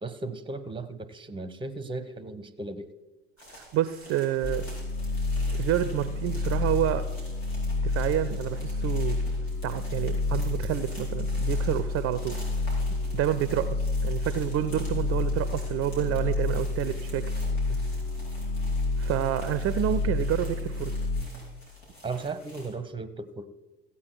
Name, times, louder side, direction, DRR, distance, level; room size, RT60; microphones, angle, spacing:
voice 1, 0.0-2.9 17.7-17.8 22.0-23.5, right 3 dB, 15° right, 15 dB, 0.8 m, -36 dB
sound 1, 3.4-22.7, equal, 75° left, 4.2 m, -49 dB
voice 2, 3.5-4.7 5.5-7.0 7.8-9.2 9.6-12.4 13.1-17.3 19.0-20.9, right 12 dB, 45° right, 13 dB, 0.6 m, -29 dB
sound 2, 4.4-21.2, left 3 dB, 40° left, 1.7 m, -29 dB
15.0 x 8.5 x 4.6 m, 1.1 s
figure-of-eight pair, 65°, 33 cm